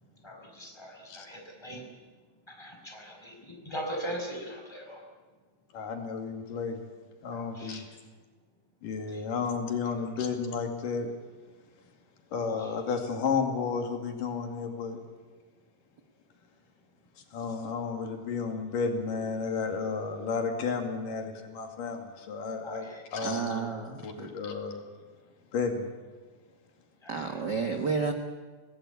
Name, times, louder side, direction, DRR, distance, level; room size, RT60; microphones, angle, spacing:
voice 1, 0.0-1.9 2.3-5.0 7.3-8.0 9.1-9.3 12.6-12.8 22.6-23.1 27.0-27.4, equal, 5° left, 1 dB, 5.7 m, -41 dB
voice 2, 5.7-6.9 7.2-7.9 8.8-11.1 12.3-15.0 17.3-23.6 24.0-24.9 25.5-25.9, left 5 dB, 80° left, 4 dB, 4.0 m, -32 dB
voice 3, 23.2-24.0 27.1-28.1, right 5 dB, 45° right, 4 dB, 1.6 m, -30 dB
25.5 x 19.0 x 8.6 m, 1.4 s
omnidirectional pair, 3.7 m